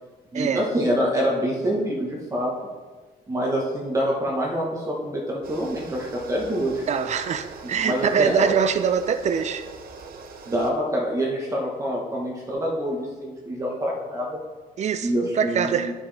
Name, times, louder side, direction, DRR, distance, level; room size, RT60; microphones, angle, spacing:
voice 1, 0.3-2.5 3.3-6.8 7.8-8.5 10.5-14.4 15.0-15.9, equal, 20° right, -3 dB, 1.3 m, -26 dB
sound 1, 5.4-10.7, right 4 dB, 65° right, 0.9 m, -42 dB
voice 2, 6.9-9.7 14.8-15.9, right 7 dB, 45° right, 10 dB, 0.5 m, -24 dB
11.0 x 5.4 x 3.5 m, 1.4 s
cardioid pair, 145°, 16 cm